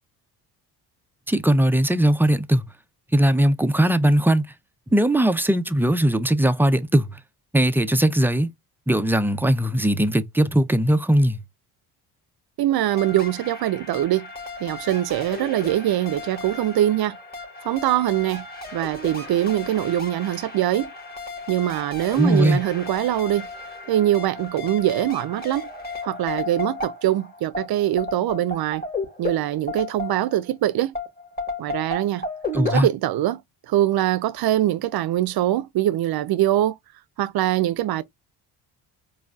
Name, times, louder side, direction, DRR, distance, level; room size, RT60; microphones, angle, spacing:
voice 1, 1.3-2.7 3.1-4.5 4.9-7.1 7.5-8.5 8.9-11.4 22.2-22.6 32.5-32.9, right 1 dB, 5° right, 0.4 m, -19 dB
voice 2, 12.6-14.3 14.6-17.2 17.6-18.5 18.7-20.9 21.5-23.5 23.9-25.7 26.0-28.8 29.2-30.9 31.6-32.2 32.7-33.4 33.7-36.8 37.2-38.0, right 13 dB, 50° right, 0.6 m, -23 dB
sound 1, 12.9-30.5 30.9-32.8, left 2 dB, 20° left, 1.8 m, -34 dB
4.6 x 2.4 x 2.3 m
hypercardioid pair, 60°, 49 cm